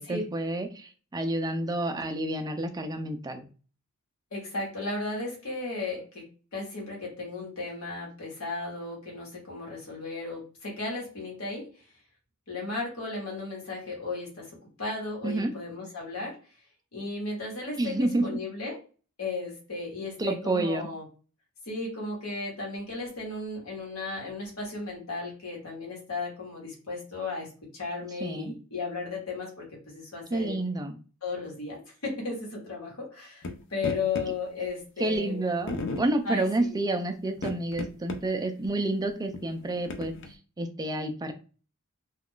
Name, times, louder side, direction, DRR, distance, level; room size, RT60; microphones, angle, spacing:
voice 1, 0.0-3.5 15.2-15.5 17.8-18.4 20.2-20.9 28.2-28.5 30.3-30.9 35.0-41.3, right 2 dB, 15° right, 6 dB, 0.3 m, -29 dB
voice 2, 4.3-6.2 6.5-11.9 12.5-16.4 16.9-18.8 19.2-21.0 21.6-27.5 27.7-30.6 31.2-35.4 36.2-36.7, left 3 dB, 75° left, -2 dB, 1.2 m, -35 dB
sound 1, 33.4-33.5 33.8-34.3 35.1-35.2 35.7-36.1 37.3-38.2 38.6-38.7 39.3-40.3, left 3 dB, 55° left, 0.4 m, -34 dB
2.3 x 2.3 x 3.6 m, 0.37 s
head